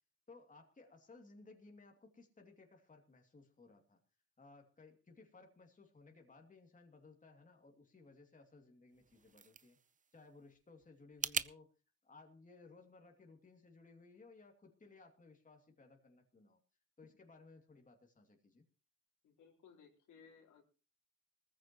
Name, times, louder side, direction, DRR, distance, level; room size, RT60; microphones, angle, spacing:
voice 1, 0.3-4.0 4.4-9.8 10.1-11.7 12.0-16.6 17.0-18.6, left 3 dB, 25° left, 3 dB, 2.6 m, -60 dB
sound 1, 8.9-11.5, right 6 dB, 25° right, 0.6 m, -43 dB
voice 2, 19.2-20.6, left 6 dB, 75° left, 1 dB, 4.1 m, -62 dB
19.5 x 14.5 x 3.0 m, 0.34 s
cardioid pair, 90°, 30 cm